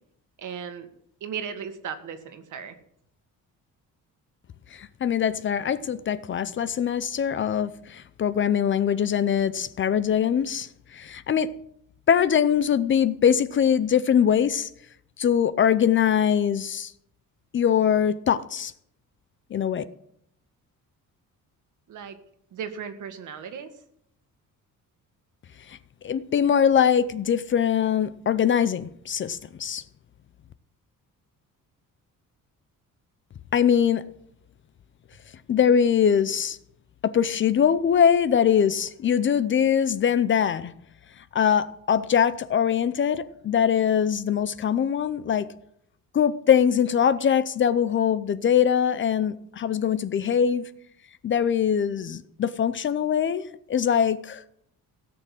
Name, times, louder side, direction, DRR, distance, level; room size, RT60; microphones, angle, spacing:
voice 1, 0.4-0.9 1.2-2.8 21.9-22.2 22.5-23.7, right 7 dB, 65° right, 1.8 m, -36 dB
voice 2, 4.7-11.5 12.1-14.7 15.2-16.9 17.5-18.7 19.5-19.8 25.7-25.8 26.0-29.8 33.5-34.0 35.5-36.6 37.0-40.7 41.3-45.5 46.1-50.7 51.2-53.4 53.7-54.4, left 8 dB, 35° left, 0.5 m, -22 dB
17.0 x 6.7 x 7.6 m
cardioid pair, 150°, 33 cm